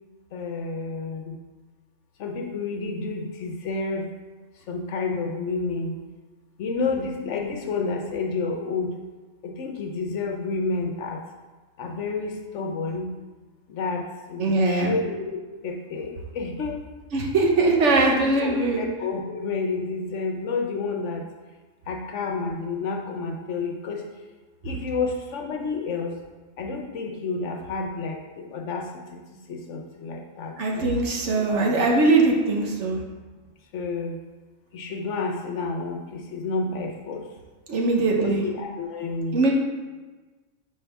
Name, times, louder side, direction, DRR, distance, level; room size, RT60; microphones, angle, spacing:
voice 1, 0.3-1.4 2.2-4.1 4.7-5.9 6.6-8.9 9.4-11.2 11.8-13.1 13.7-15.4 15.6-16.8 18.0-21.3 21.9-24.0 24.6-26.1 26.6-29.2 29.5-30.5 31.3-31.7 33.7-34.2 34.7-37.2 38.2-39.4, left 4 dB, 70° left, 2 dB, 1.0 m, -30 dB
voice 2, 14.4-15.0 17.1-18.8 30.6-33.0 37.7-38.5 39.3-39.5, right 3 dB, 70° right, 0 dB, 1.2 m, -21 dB
5.5 x 5.2 x 3.4 m, 1.3 s
omnidirectional pair, 1.3 m